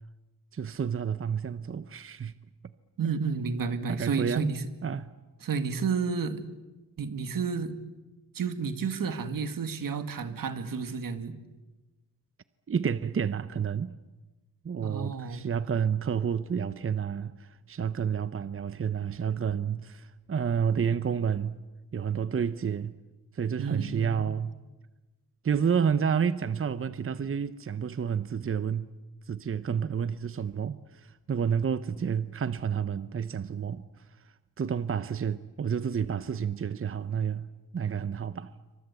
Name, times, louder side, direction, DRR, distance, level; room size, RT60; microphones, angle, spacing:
voice 1, 0.5-2.3 3.9-4.5 4.8-5.1 12.7-13.9 14.6-21.6 21.9-22.9 23.3-24.5 25.4-28.9 29.3-33.9 34.6-37.5 37.7-38.5, right 7 dB, 40° right, 0.8 m, -30 dB
voice 2, 3.0-4.6 5.4-6.4 7.0-7.7 8.3-11.4 14.8-15.5 23.6-24.3, right 5 dB, 80° right, 2.1 m, -31 dB
27.5 x 25.5 x 8.4 m
wide cardioid pair, 115°, 33 cm